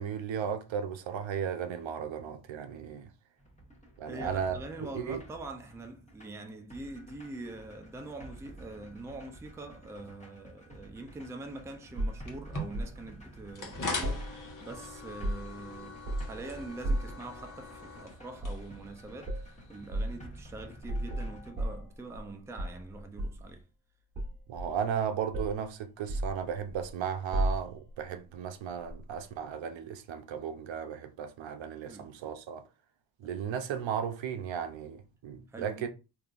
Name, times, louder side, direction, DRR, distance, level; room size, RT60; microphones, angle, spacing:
voice 1, 0.0-3.1 4.0-4.6 4.9-5.2 24.5-32.6 33.2-35.9, right 7 dB, 65° right, 0.6 m, -35 dB
sound 1, 3.4-21.5, right 1 dB, 15° left, 1.2 m, -52 dB
voice 2, 4.1-23.6 31.9-32.2 33.2-33.3 35.5-35.9, right 2 dB, 5° right, 0.4 m, -44 dB
sound 2, 12.0-13.0 14.0-14.8 15.0-15.6 16.0-16.4 16.8-17.2 18.4-18.7 19.2-19.5 19.9-20.2 20.8-22.3 22.6-23.5 24.1-25.0 25.3-25.6 26.1-26.9 27.3-27.9 28.9-29.0, right 1 dB, 45° right, 1.3 m, -34 dB
sound 3, 12.3-20.2, left 2 dB, 40° left, 1.1 m, -42 dB
3.5 x 2.7 x 2.4 m
cardioid pair, 80°, 49 cm